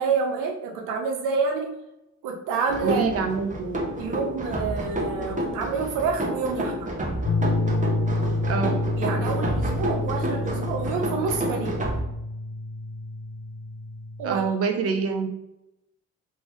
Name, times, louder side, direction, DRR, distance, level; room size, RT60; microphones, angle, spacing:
voice 1, 0.0-1.8 2.2-3.1 4.0-6.9 9.0-11.8 14.2-14.5 14.7-14.9, right 5 dB, 90° right, 2 dB, 0.7 m, -28 dB
sound 1, 2.7-12.0, right 1 dB, 25° right, 0.8 m, -30 dB
voice 2, 2.8-3.8 8.5-8.8 14.2-15.3, right 5 dB, 50° right, 7 dB, 0.6 m, -26 dB
sound 2, 7.2-14.5, left 2 dB, 60° left, 0.5 m, -28 dB
3.1 x 2.7 x 3.2 m, 0.89 s
supercardioid pair, 70°, 31 cm